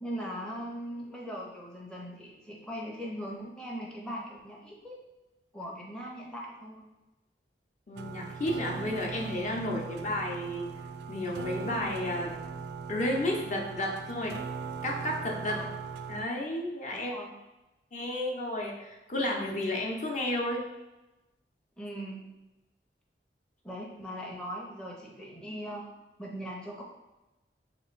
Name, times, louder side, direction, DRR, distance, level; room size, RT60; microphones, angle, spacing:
voice 1, 0.0-4.9 5.5-6.9 15.4-15.8 16.9-17.3 21.8-22.2 23.6-25.8 26.2-26.8, equal, 5° left, -3 dB, 0.6 m, -40 dB
voice 2, 7.9-10.7 11.1-12.3 12.9-14.4 14.8-15.6 16.1-17.1 17.9-20.6, left 1 dB, 45° left, 0 dB, 0.7 m, -32 dB
sound 1, 8.0-16.3, right 5 dB, 65° right, 0.3 m, -39 dB
3.3 x 3.0 x 4.5 m, 1.1 s
head